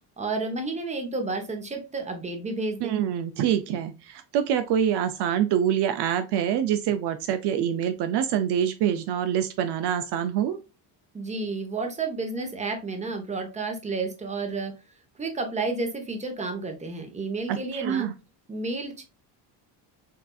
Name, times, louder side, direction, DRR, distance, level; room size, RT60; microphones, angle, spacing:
voice 1, 0.2-3.0 11.1-14.7 15.2-18.1 18.5-19.0, right 3 dB, 15° right, 4 dB, 0.9 m, -31 dB
voice 2, 2.8-10.6 17.5-18.1, right 9 dB, 65° right, 10 dB, 0.6 m, -25 dB
6.5 x 2.6 x 2.3 m, 0.28 s
cardioid pair, 135°, 43 cm